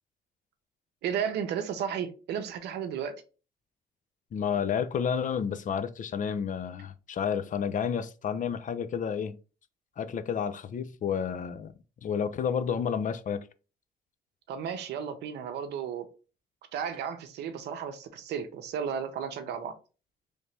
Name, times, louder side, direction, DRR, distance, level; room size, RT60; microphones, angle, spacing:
voice 1, 1.0-3.2 14.5-16.1 16.7-19.7, right 8 dB, 85° right, 0.6 m, -33 dB
voice 2, 4.3-9.4 10.0-11.7 12.0-13.5, left 7 dB, 50° left, 0.4 m, -30 dB
3.2 x 2.7 x 3.2 m
supercardioid pair, 65°, 17 cm